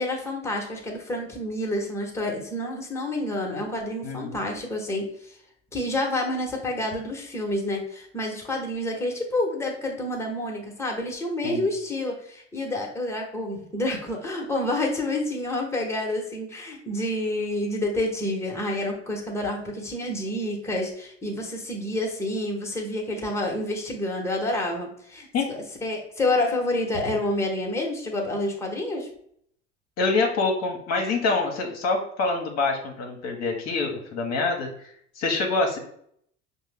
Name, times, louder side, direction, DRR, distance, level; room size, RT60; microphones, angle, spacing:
voice 1, 0.0-5.4 5.7-29.1, left 1 dB, 5° left, -1 dB, 1.1 m, -28 dB
voice 2, 4.0-4.4 11.4-11.7 25.3-25.5 30.0-35.8, left 3 dB, 45° left, 2 dB, 0.9 m, -26 dB
5.3 x 2.2 x 3.4 m, 0.67 s
hypercardioid pair, 70°, 35 cm